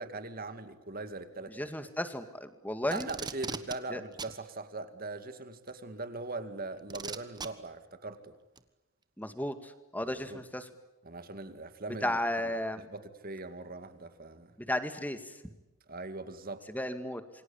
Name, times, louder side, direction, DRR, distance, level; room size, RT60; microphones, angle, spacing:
voice 1, 0.0-1.7 2.9-8.4 10.0-10.4 11.0-12.2 12.4-14.6 15.9-16.6, right 3 dB, 40° right, 10 dB, 2.3 m, -41 dB
voice 2, 1.5-3.1 3.9-4.0 9.2-10.7 12.0-12.9 14.6-15.4 16.7-17.2, left 1 dB, 10° left, 9 dB, 2.0 m, -34 dB
Packing tape duct tape, 2.9-3.8 4.2-4.3 5.7-5.8 6.9-7.5 8.6-8.7, right 4 dB, 20° right, 1.3 m, -38 dB
28.0 x 24.0 x 8.7 m, 1.0 s
head